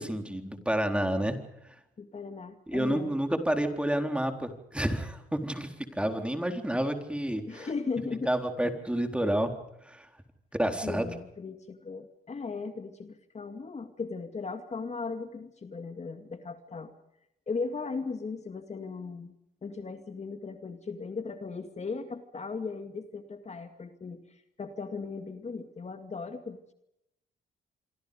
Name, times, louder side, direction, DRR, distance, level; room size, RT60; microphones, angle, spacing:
voice 1, 0.0-1.4 1.6-1.7 2.7-7.7 8.3-9.5 9.8-10.1 10.6-11.1, right 1 dB, 5° right, 6 dB, 4.0 m, -29 dB
voice 2, 2.0-3.1 7.5-8.3 10.8-16.9 17.5-19.3 19.6-26.7, left 4 dB, 35° left, 7 dB, 2.2 m, -37 dB
27.0 x 24.5 x 5.3 m, 0.82 s
cardioid pair, 90°, 20 cm